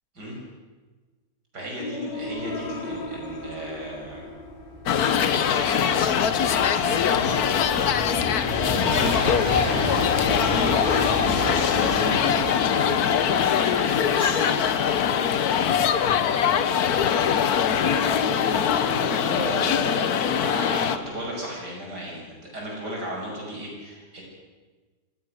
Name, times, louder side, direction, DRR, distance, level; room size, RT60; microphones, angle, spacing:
voice 1, 1.5-4.3 5.2-10.0 10.3-14.8 18.7-24.2, equal, 75° right, -2 dB, 6.8 m, -35 dB
sound 1, 1.8-19.9, left 1 dB, 90° left, 2.6 m, -38 dB
Train, 2.4-2.5 2.7-19.3 20.3-20.4, left 1 dB, 20° left, 4.4 m, -34 dB
sound 2, 4.9-21.0, left 8 dB, 65° left, 1.4 m, -22 dB
26.0 x 16.5 x 6.4 m, 1.3 s
omnidirectional pair, 1.8 m